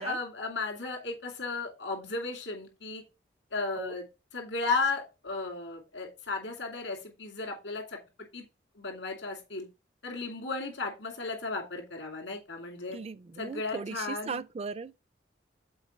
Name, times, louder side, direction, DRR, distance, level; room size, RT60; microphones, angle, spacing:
voice 1, 0.0-3.0 3.5-4.0 4.3-8.0 8.3-8.4 8.8-9.7 10.0-13.0 13.4-14.4, left 3 dB, 80° left, 2.5 m, -34 dB
voice 2, 12.9-15.0, right 4 dB, 35° right, 0.3 m, -38 dB
7.1 x 4.4 x 4.3 m
head